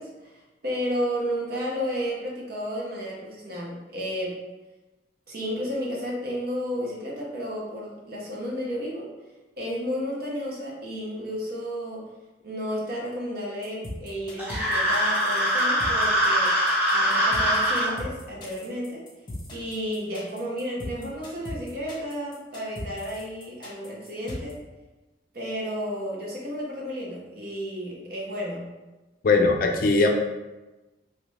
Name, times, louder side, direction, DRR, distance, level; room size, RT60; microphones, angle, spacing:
voice 1, 0.0-4.3 5.3-9.1 9.6-12.1 12.4-16.5 16.9-19.0 19.5-24.6 25.3-28.6, equal, 55° right, -3 dB, 0.8 m, -32 dB
sound 1, 13.6-24.5, left 1 dB, 25° left, 0.8 m, -38 dB
sound 2, 14.4-17.9, equal, 10° right, 0.8 m, -23 dB
voice 2, 29.2-30.1, left 3 dB, 50° left, 3 dB, 0.4 m, -20 dB
3.1 x 2.5 x 3.2 m, 1.1 s
head